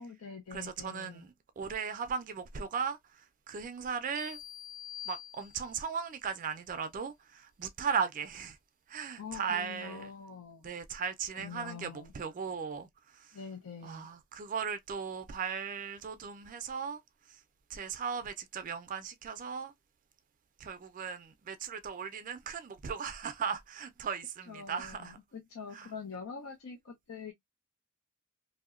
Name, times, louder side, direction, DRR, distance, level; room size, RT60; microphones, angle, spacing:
voice 1, 0.0-1.2 9.2-10.7 11.3-12.1 13.3-14.1 24.5-27.3, left 5 dB, 85° left, 0.5 m, -45 dB
voice 2, 0.5-4.4 5.1-8.6 8.9-10.1 10.6-13.4 13.8-17.0 17.3-17.4 17.7-19.7 20.6-25.2 25.7-25.9, right 6 dB, 40° right, 0.3 m, -37 dB
sound 1, 4.2-6.0, left 11 dB, 45° left, 0.8 m, -46 dB
2.7 x 2.0 x 2.3 m
head